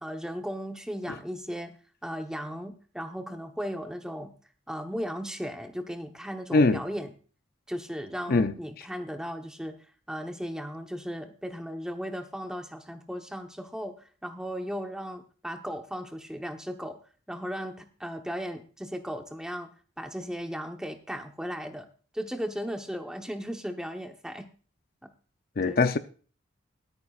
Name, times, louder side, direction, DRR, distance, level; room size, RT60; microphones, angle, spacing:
voice 1, 0.0-1.8 2.0-4.3 4.7-7.1 7.7-9.8 10.1-13.9 14.2-17.0 17.3-21.9 22.1-24.5 25.0-25.1 25.6-25.8, equal, 5° right, 1.0 m, -36 dB
voice 2, 25.6-26.0, left 3 dB, 50° left, 0.5 m, -22 dB
22.5 x 9.0 x 2.4 m
head